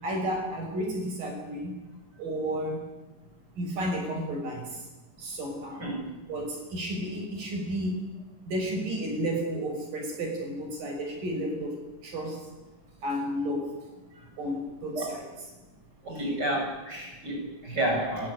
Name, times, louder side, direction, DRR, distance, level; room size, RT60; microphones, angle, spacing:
voice 1, 0.0-1.7 2.2-2.8 3.6-4.8 5.2-5.8 6.3-8.0 8.5-11.8 12.0-12.5 13.0-13.7 14.4-15.2 16.1-16.4, equal, 85° right, 2 dB, 7.7 m, -32 dB
voice 2, 5.8-6.2 14.1-14.3 14.9-15.2 16.0-18.3, right 1 dB, 30° right, 1 dB, 7.7 m, -31 dB
29.5 x 15.0 x 10.0 m, 1.1 s
omnidirectional pair, 3.8 m